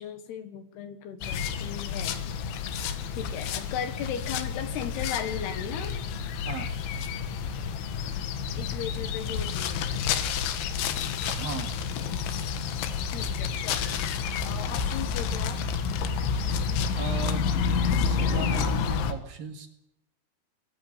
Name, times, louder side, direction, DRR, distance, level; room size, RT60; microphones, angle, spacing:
voice 1, 0.0-2.4 2.7-2.8 3.2-5.9 8.6-10.0 13.1-15.6, left 8 dB, 70° left, 9 dB, 3.4 m, -37 dB
sound 1, 1.2-19.1, left 6 dB, 85° left, 3.9 m, -29 dB
voice 2, 11.3-11.7 16.9-17.5 18.0-19.7, right 4 dB, 60° right, 5 dB, 3.6 m, -37 dB
21.0 x 14.5 x 8.9 m, 0.82 s
omnidirectional pair, 5.2 m